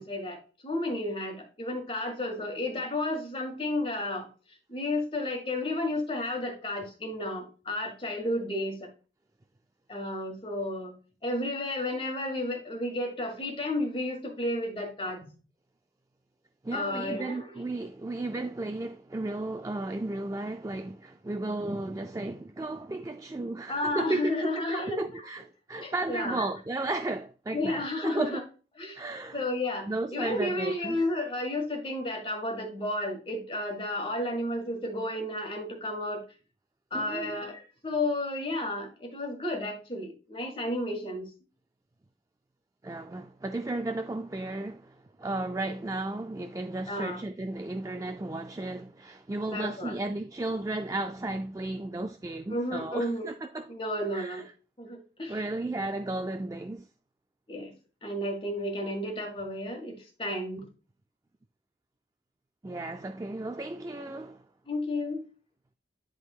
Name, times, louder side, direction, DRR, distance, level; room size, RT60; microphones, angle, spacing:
voice 1, 0.0-4.3 4.7-8.9 9.9-10.9 11.2-15.3 16.7-17.6 23.7-25.2 25.8-26.5 27.5-28.4 28.8-29.0 29.3-36.2 36.9-41.3 46.9-47.2 49.5-49.9 52.5-53.3 53.7-54.4 54.8-55.5 55.8-55.9 57.5-57.7 58.0-60.7 64.7-65.2, left 1 dB, 30° left, 1.6 m, -32 dB
voice 2, 16.6-24.4 24.7-28.4 28.9-29.4 29.9-31.0 36.9-37.4 42.8-53.7 54.1-54.4 55.3-56.9 62.6-64.4, right 2 dB, 20° right, 0.3 m, -34 dB
11.0 x 3.7 x 2.3 m
head